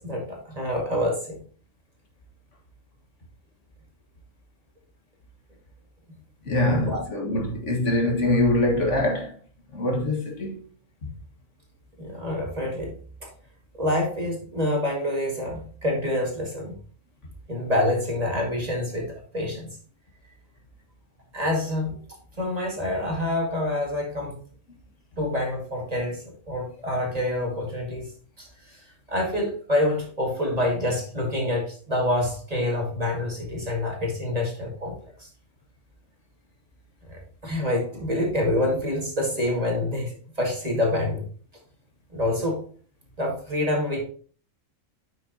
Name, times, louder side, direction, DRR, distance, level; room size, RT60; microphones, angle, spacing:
voice 1, 0.0-1.4 6.7-7.0 12.0-12.9 13.2-13.3 13.8-16.8 17.5-19.7 21.3-22.0 22.4-24.4 25.2-28.1 28.4-28.5 29.1-34.9 35.2-35.3 37.1-41.2 42.1-42.6 43.2-44.0, left 1 dB, 30° right, 2.0 m, -27 dB
voice 2, 6.5-9.3 9.7-10.6 11.0-11.1, left 1 dB, 65° left, 1.9 m, -24 dB
8.8 x 6.2 x 2.8 m
omnidirectional pair, 1.3 m